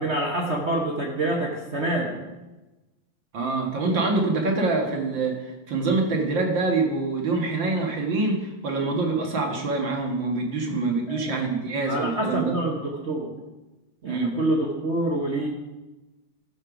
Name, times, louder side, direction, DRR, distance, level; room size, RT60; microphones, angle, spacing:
voice 1, 0.0-2.3 11.1-13.4 14.0-15.5, right 1 dB, 40° right, -1 dB, 1.3 m, -27 dB
voice 2, 3.3-12.5 14.1-14.4, right 3 dB, 65° right, 1 dB, 2.3 m, -25 dB
14.5 x 6.5 x 5.1 m, 1.1 s
omnidirectional pair, 2.3 m